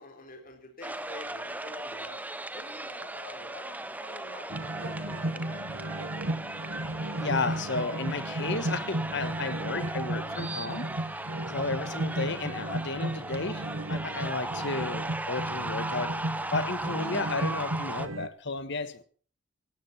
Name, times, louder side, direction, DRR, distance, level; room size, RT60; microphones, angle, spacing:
voice 1, 0.0-2.2 2.5-6.2, left 1 dB, 45° left, 4.0 m, -48 dB
sound 1, 0.8-18.1, right 2 dB, 10° right, 0.9 m, -37 dB
sound 2, 4.5-18.3, right 1 dB, 85° right, 1.4 m, -34 dB
voice 2, 7.2-16.2 16.5-19.0, left 3 dB, 65° left, 1.5 m, -33 dB
18.5 x 17.0 x 4.4 m
head